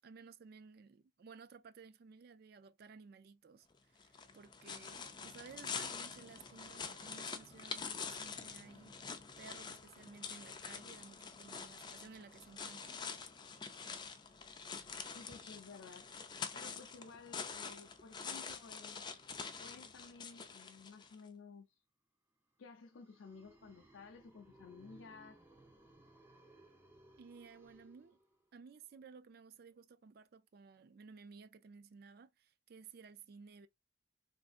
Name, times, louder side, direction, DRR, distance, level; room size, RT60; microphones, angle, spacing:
voice 1, 0.0-13.2 27.2-28.2 28.5-33.7, right 5 dB, 55° right, 0.4 m, -56 dB
sound 1, 4.0-21.2, left 5 dB, 25° left, 0.4 m, -46 dB
voice 2, 15.1-16.1 16.5-19.1 19.6-21.7 22.6-25.4, left 5 dB, 80° left, 0.5 m, -54 dB
sound 2, 22.7-28.6, right 1 dB, 10° right, 0.7 m, -63 dB
3.5 x 2.6 x 2.4 m
head